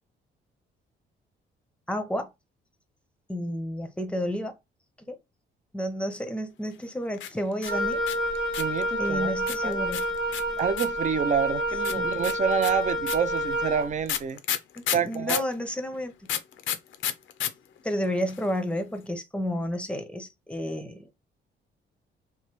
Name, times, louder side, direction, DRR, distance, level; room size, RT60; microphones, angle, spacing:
voice 1, 1.9-2.3 3.3-4.5 5.1-5.2 5.7-8.0 9.0-10.1 11.9-12.1 14.8-16.3 17.8-21.1, equal, 5° left, 0.7 m, -31 dB
sound 1, 7.1-8.8 9.5-11.1 11.8-15.5 16.3-17.5 17.8-17.9 18.0-18.5, left 10 dB, 75° left, 0.5 m, -31 dB
Wind instrument woodwind instrument, 7.7-13.9, equal, 60° right, 0.9 m, -28 dB
voice 2, 8.6-9.3 9.6-9.8 10.6-14.4 14.9-15.4, right 7 dB, 40° right, 0.5 m, -27 dB
3.1 x 2.1 x 3.0 m
cardioid pair, 90°, 20 cm